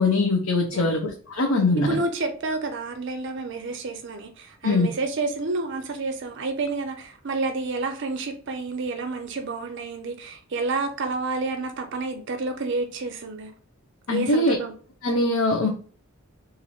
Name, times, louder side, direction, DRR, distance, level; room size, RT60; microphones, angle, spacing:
voice 1, 0.0-2.0 4.6-4.9 14.1-14.6 15.0-15.7, left 2 dB, 90° left, 0.6 m, -22 dB
voice 2, 1.8-13.5 14.1-14.7, right 3 dB, 55° right, 0.5 m, -29 dB
3.0 x 2.6 x 4.1 m
head